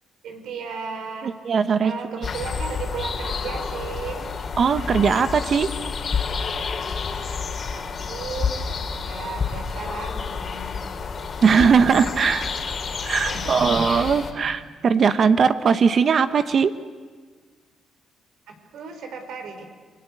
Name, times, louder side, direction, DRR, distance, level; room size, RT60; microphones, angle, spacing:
voice 1, 0.2-1.4 1.8-4.3 7.7-8.6 9.0-10.8 12.1-14.5 18.5-19.6, right 5 dB, 80° right, 6 dB, 4.0 m, -35 dB
voice 2, 1.2-1.9 4.6-5.7 11.4-12.4 13.0-16.7, right 6 dB, 50° right, 12 dB, 1.0 m, -19 dB
sound 1, 2.2-14.3, left 5 dB, 45° left, 3.2 m, -29 dB
28.5 x 20.0 x 8.2 m, 1.5 s
cardioid pair, 90°, 0 cm